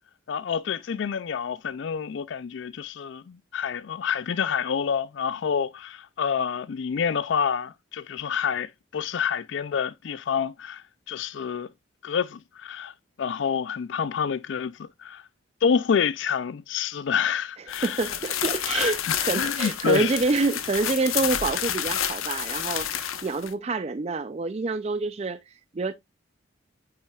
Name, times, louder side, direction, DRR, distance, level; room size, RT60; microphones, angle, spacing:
voice 1, 0.3-11.7 12.0-15.2 15.6-18.1 18.7-20.2, left 7 dB, 65° left, 0.4 m, -28 dB
sound 1, 17.7-23.5, left 10 dB, 90° left, 0.9 m, -30 dB
voice 2, 17.8-25.9, right 3 dB, 30° right, 0.4 m, -27 dB
8.8 x 5.8 x 2.3 m
head